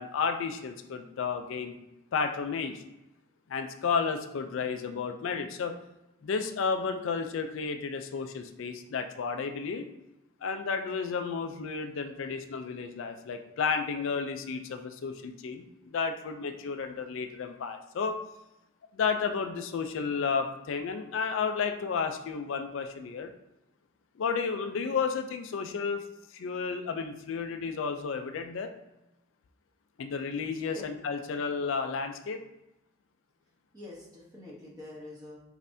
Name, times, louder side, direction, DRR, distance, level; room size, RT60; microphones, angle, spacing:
voice 1, 0.0-1.7 2.1-2.7 3.5-5.8 6.2-9.9 10.4-18.2 18.9-23.3 24.2-26.0 26.3-28.7 30.0-32.4, left 5 dB, 65° left, 6 dB, 0.4 m, -32 dB
voice 2, 30.5-30.9 33.7-35.4, left 2 dB, 20° right, -5 dB, 0.9 m, -45 dB
5.4 x 2.6 x 2.6 m, 0.93 s
head